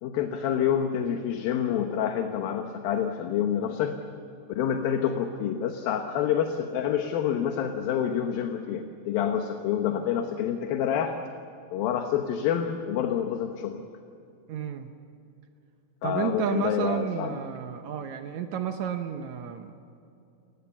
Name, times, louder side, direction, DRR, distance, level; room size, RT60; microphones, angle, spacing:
voice 1, 0.0-4.0 4.5-11.2 11.7-13.8 16.0-17.3, left 9 dB, 70° left, 5 dB, 2.7 m, -27 dB
voice 2, 14.5-14.9 16.0-19.7, right 8 dB, 85° right, 6 dB, 1.6 m, -31 dB
29.0 x 20.0 x 7.2 m, 2.7 s
omnidirectional pair, 4.8 m